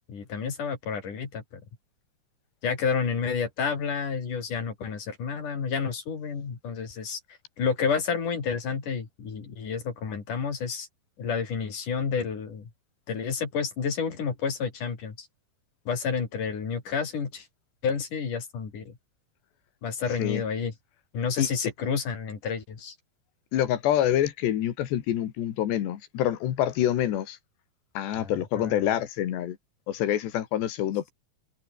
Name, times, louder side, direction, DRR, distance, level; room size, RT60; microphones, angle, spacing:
voice 1, 0.1-1.6 2.6-7.2 7.6-10.9 11.2-12.7 13.1-15.3 15.9-17.5 17.8-19.0 19.8-20.7 21.1-23.0 28.1-28.7, left 6 dB, 50° left, 5.3 m, -30 dB
voice 2, 23.5-27.4 28.0-29.6 29.9-31.1, left 11 dB, 85° left, 4.2 m, -26 dB
omnidirectional pair, 4.8 m